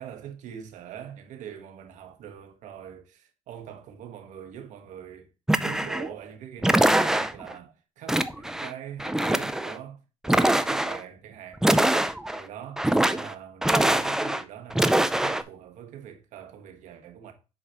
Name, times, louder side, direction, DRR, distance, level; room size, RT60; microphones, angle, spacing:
voice 1, 0.0-5.3 5.6-10.0 10.2-11.9 12.3-17.3, right 9 dB, 75° right, 1.3 m, -42 dB
sound 1, 5.5-6.1 6.6-7.5 8.1-8.7 9.0-9.8 10.2-11.0 11.6-12.4 12.8-13.3 13.6-14.4 14.7-15.4, right 1 dB, 5° right, 0.4 m, -23 dB
8.1 x 5.0 x 2.9 m
cardioid pair, 135°, 13 cm